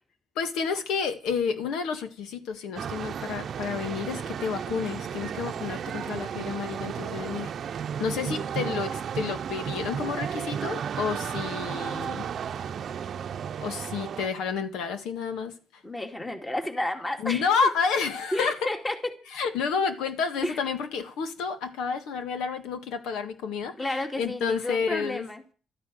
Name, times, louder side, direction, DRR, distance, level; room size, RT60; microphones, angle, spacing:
voice 1, 0.4-7.5 8.0-12.3 13.6-15.5 17.2-18.5 19.3-25.2, left 6 dB, 90° left, 1.8 m, -30 dB
sound 1, 2.8-14.3, right 8 dB, 60° right, 0.7 m, -33 dB
voice 2, 15.8-17.7 18.3-19.1 20.4-20.7 23.8-25.4, left 1 dB, 20° left, 2.6 m, -31 dB
13.0 x 9.9 x 7.8 m
cardioid pair, 90°, 0 cm